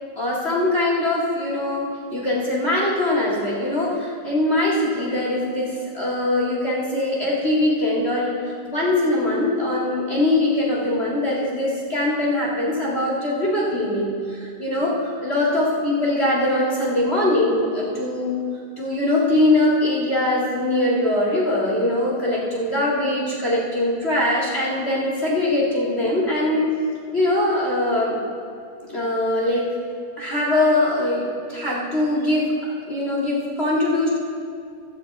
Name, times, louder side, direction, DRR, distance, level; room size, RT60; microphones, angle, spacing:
voice 1, 0.1-5.7 5.9-18.4 18.8-26.7 27.1-28.2 28.8-29.8 30.2-32.5 32.9-34.1, left 1 dB, 25° left, -5 dB, 1.5 m, -22 dB
14.0 x 5.6 x 7.8 m, 2.4 s
omnidirectional pair, 3.8 m